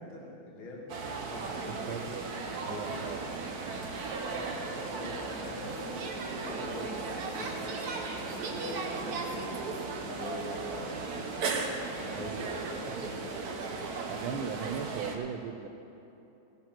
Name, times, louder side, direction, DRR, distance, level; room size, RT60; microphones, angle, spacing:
voice 1, 0.0-3.0 4.4-14.0 14.3-14.5, left 2 dB, 85° left, -3 dB, 2.6 m, -44 dB
sound 1, 0.9-15.2, right 4 dB, 55° right, 1.4 m, -36 dB
voice 2, 1.6-2.3 2.6-3.2 3.6-4.0 12.1-12.9 14.1-15.7, right 8 dB, 85° right, 8 dB, 1.5 m, -39 dB
16.0 x 7.6 x 5.9 m, 2.9 s
omnidirectional pair, 2.2 m